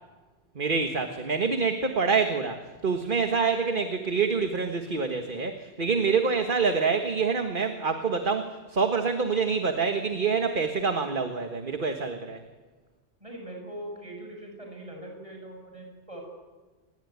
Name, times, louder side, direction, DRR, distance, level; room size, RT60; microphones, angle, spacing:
voice 1, 0.6-12.4, right 5 dB, 50° right, 6 dB, 1.7 m, -26 dB
voice 2, 13.2-16.2, right 1 dB, 30° right, 1 dB, 7.5 m, -41 dB
28.0 x 20.0 x 9.6 m, 1.3 s
omnidirectional pair, 1.2 m